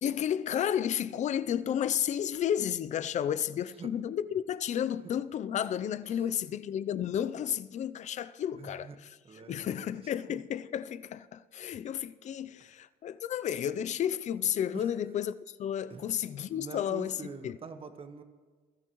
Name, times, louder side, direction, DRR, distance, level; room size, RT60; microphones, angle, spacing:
voice 1, 0.0-8.9 9.5-17.1 17.4-17.6, left 9 dB, 45° left, 0.5 m, -32 dB
voice 2, 8.6-9.0 9.2-10.4 14.7-15.0 15.9-16.1 16.5-18.2, right 5 dB, 35° right, 1.3 m, -45 dB
22.0 x 13.5 x 3.1 m
cardioid pair, 110°, 17 cm